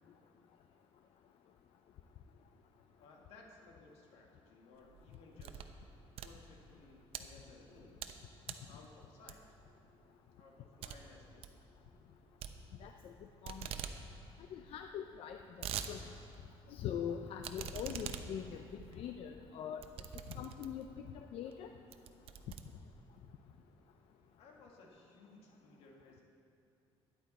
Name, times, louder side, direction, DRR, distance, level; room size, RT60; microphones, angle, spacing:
voice 1, 3.0-5.6 6.2-8.0 8.7-9.6 10.3-11.6 24.4-26.2, left 3 dB, 90° left, 0 dB, 1.8 m, -59 dB
sound 1, 4.8-5.8 6.1-7.2 7.7-8.2 8.4-8.7 9.3-9.6 10.0-10.1 10.4-10.5 10.8-11.0 11.3-11.6 12.4-13.1 13.4-14.0 14.3-14.4 14.6-14.7 15.2-15.9 16.3-16.4 17.4-20.9 21.5-21.6 21.9-23.2, right 9 dB, 75° right, 0.7 m, -44 dB
voice 2, 12.8-13.1 13.4-13.7 14.5-16.1 16.7-19.9 20.3-21.7, left 8 dB, 70° left, 6 dB, 0.5 m, -43 dB
13.5 x 10.5 x 4.2 m, 2.7 s
cardioid pair, 135°, 10 cm